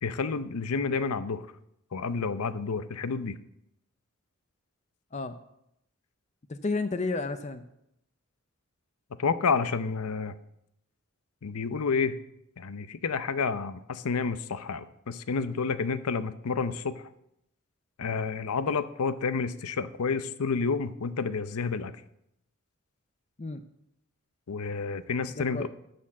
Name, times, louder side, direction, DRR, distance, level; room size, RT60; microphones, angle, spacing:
voice 1, 0.0-1.5 1.9-3.4 9.2-10.3 11.4-12.2 12.6-17.1 18.0-21.9 24.5-25.7, left 5 dB, 90° left, 13 dB, 0.6 m, -30 dB
voice 2, 6.5-7.7 23.4-23.6 25.4-25.7, left 3 dB, 30° left, 10 dB, 0.4 m, -32 dB
11.5 x 4.4 x 7.3 m, 0.79 s
head